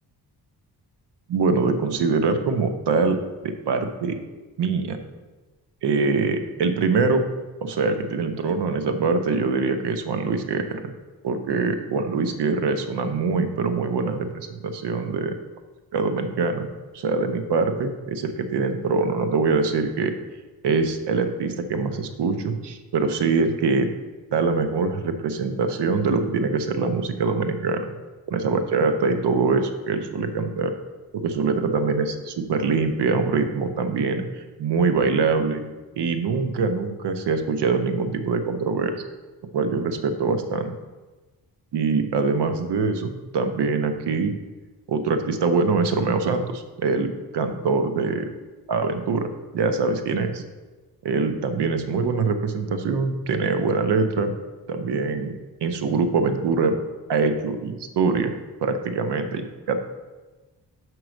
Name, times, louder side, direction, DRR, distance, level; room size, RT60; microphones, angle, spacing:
voice 1, 1.3-3.2 3.4-4.2 4.6-5.0 5.8-7.2 7.6-10.9 11.2-15.3 15.9-16.7 16.9-20.1 20.6-23.9 24.3-27.8 28.3-30.7 31.1-35.6 36.0-39.0 39.5-40.7 41.7-44.3 44.9-48.3 48.7-49.3 49.5-50.3 51.0-54.3 54.7-55.3 55.6-56.8 57.1-58.3 58.6-59.8, right 4 dB, 80° right, 8 dB, 0.8 m, -23 dB
6.0 x 4.7 x 6.3 m, 1.2 s
cardioid pair, 100°, 41 cm